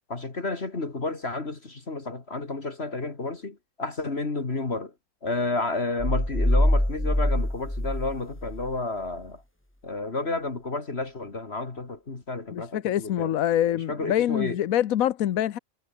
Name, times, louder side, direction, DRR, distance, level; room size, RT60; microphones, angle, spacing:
voice 1, 0.1-4.9 5.2-9.4 9.8-13.3 13.7-14.6, left 3 dB, 50° left, 2.7 m, -31 dB
sound 1, 6.0-8.8, left 1 dB, 10° left, 2.7 m, -24 dB
voice 2, 12.5-15.6, left 11 dB, 80° left, 1.2 m, -25 dB
omnidirectional pair, 1.4 m